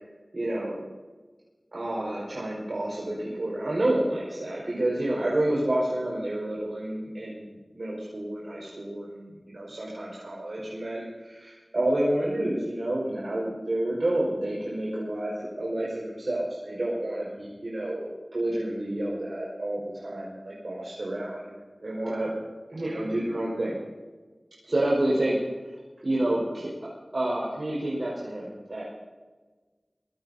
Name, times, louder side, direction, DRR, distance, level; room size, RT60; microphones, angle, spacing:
voice 1, 0.3-0.8 1.7-21.4 21.8-22.3 22.7-23.8 24.6-25.4 25.6-28.8, right 1 dB, 70° right, -5 dB, 5.3 m, -29 dB
24.0 x 20.0 x 2.8 m, 1.3 s
wide cardioid pair, 60°, 0 cm